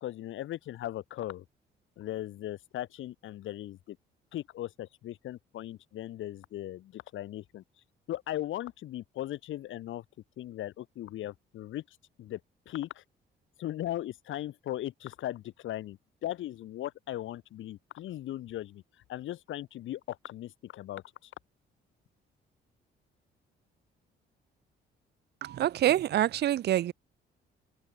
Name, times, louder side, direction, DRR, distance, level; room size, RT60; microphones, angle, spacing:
voice 1, 0.0-1.4 2.0-4.0 4.3-7.6 8.1-10.0 10.4-11.8 12.2-12.4 12.7-13.0 13.6-18.8 19.1-21.3, left 13 dB, 80° left, 2.2 m, -38 dB
voice 2, 25.4-26.9, right 12 dB, 55° right, 0.5 m, -26 dB
cardioid pair, 90°, 20 cm